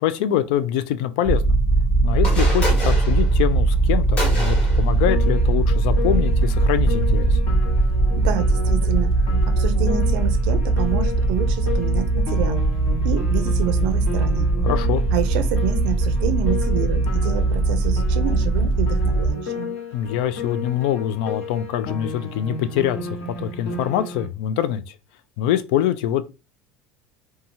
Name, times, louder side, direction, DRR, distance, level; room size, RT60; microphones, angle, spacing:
voice 1, 0.0-1.6 2.0-7.4 14.6-15.0 19.9-24.9 25.4-26.2, left 11 dB, 75° left, 0.3 m, -24 dB
sound 1, 1.2-19.3, right 2 dB, ahead, 0.5 m, -20 dB
sound 2, 2.1-7.4, right 2 dB, 25° left, 1.0 m, -28 dB
Piano, 5.1-24.3, left 4 dB, 55° left, 1.0 m, -33 dB
voice 2, 8.2-9.1 9.5-12.6 13.0-14.5 15.1-19.7, right 9 dB, 70° right, 0.4 m, -28 dB
2.8 x 2.3 x 2.7 m
cardioid pair, 175°, 5 cm